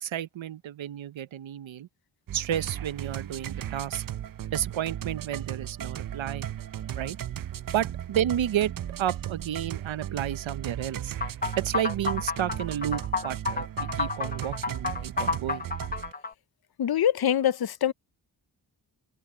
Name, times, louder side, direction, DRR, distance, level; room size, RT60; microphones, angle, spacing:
voice 1, 0.0-1.9 2.3-4.0 4.5-6.5 6.9-7.2 7.7-8.7 9.0-11.2 11.6-15.6, right 11 dB, 85° right, 0.9 m, -31 dB
sound 1, 2.3-16.1, right 10 dB, 50° right, 0.5 m, -36 dB
sound 2, 11.2-16.3, left 4 dB, 20° left, 0.9 m, -31 dB
voice 2, 16.8-17.9, left 10 dB, 55° left, 0.6 m, -24 dB
wide cardioid pair, 120°, 45 cm